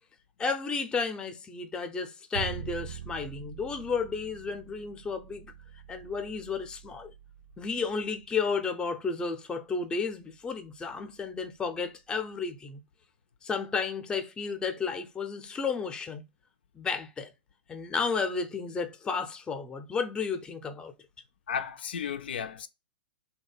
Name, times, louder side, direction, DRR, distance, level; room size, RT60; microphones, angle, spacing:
voice 1, 0.4-5.5 5.9-7.1 7.6-12.8 13.4-16.2 16.7-17.3 17.7-20.9, left 5 dB, 15° left, 0.5 m, -32 dB
Bowed string instrument, 2.3-8.5, right 9 dB, 80° right, 0.7 m, -44 dB
voice 2, 21.5-22.7, left 7 dB, 70° left, 0.4 m, -34 dB
3.2 x 2.3 x 3.9 m
hypercardioid pair, 110°, 6 cm